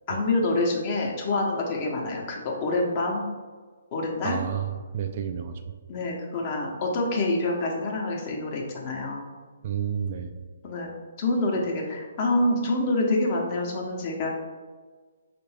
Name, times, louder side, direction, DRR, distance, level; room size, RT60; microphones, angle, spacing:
voice 1, 0.1-3.3 3.9-4.4 5.9-9.3 10.6-10.9 11.2-14.4, left 2 dB, 35° left, 0 dB, 0.8 m, -26 dB
voice 2, 4.2-5.6 9.6-10.4, right 8 dB, 45° right, 7 dB, 0.3 m, -30 dB
4.5 x 2.5 x 3.3 m, 1.4 s
figure-of-eight pair, 135°, 0 cm